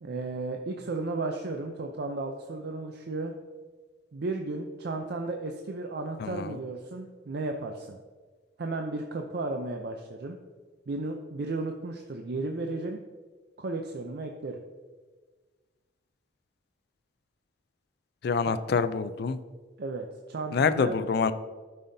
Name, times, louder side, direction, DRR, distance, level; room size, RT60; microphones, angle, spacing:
voice 1, 0.0-3.3 4.1-8.0 8.6-10.4 10.9-13.0 13.6-14.6 18.5-18.6 19.8-20.9, right 2 dB, 60° right, 4 dB, 0.5 m, -34 dB
voice 2, 6.2-6.5 18.2-19.4 20.5-21.3, left 5 dB, 60° left, 13 dB, 0.4 m, -26 dB
12.5 x 5.5 x 2.7 m, 1.4 s
head